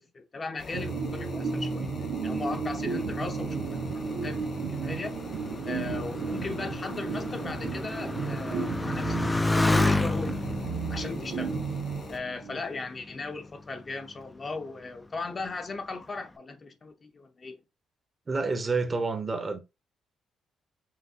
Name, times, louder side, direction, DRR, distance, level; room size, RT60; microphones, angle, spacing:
voice 1, 0.0-1.9 2.2-5.2 5.6-10.4 10.9-11.6 12.1-17.6, left 3 dB, 35° left, 0.7 m, -38 dB
sound 1, 0.6-12.2, left 3 dB, 60° left, 1.4 m, -44 dB
sound 2, 0.7-12.6, right 4 dB, 80° right, 1.0 m, -33 dB
Motorcycle, 3.8-12.8 13.5-14.1, left 2 dB, 15° left, 0.4 m, -31 dB
voice 2, 18.3-19.6, right 3 dB, 30° right, 0.8 m, -28 dB
5.8 x 2.6 x 2.8 m
cardioid pair, 90°, 0 cm